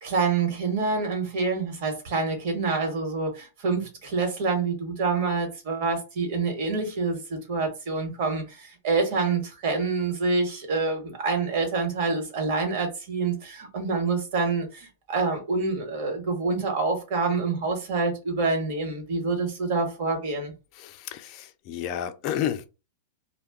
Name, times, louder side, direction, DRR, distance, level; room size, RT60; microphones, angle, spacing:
voice 1, 0.0-20.5, right 4 dB, 50° right, 1.2 m, -27 dB
voice 2, 20.7-22.7, left 10 dB, 35° left, 0.4 m, -31 dB
2.2 x 2.2 x 3.5 m
supercardioid pair, 160°, 0 cm